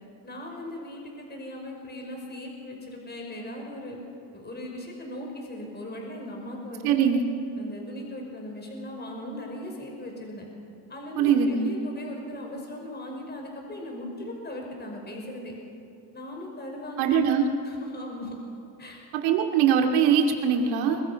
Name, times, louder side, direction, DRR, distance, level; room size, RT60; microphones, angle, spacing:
voice 1, 0.2-4.0 4.3-7.0 7.6-10.4 10.9-15.5 16.1-17.2 17.6-18.4 18.8-19.0, left 1 dB, 20° left, 1 dB, 5.5 m, -38 dB
voice 2, 6.8-7.3 11.2-11.7 17.0-17.5 19.2-21.0, right 7 dB, 90° right, 3 dB, 2.9 m, -22 dB
26.5 x 22.0 x 6.0 m, 2.6 s
cardioid pair, 110°, 47 cm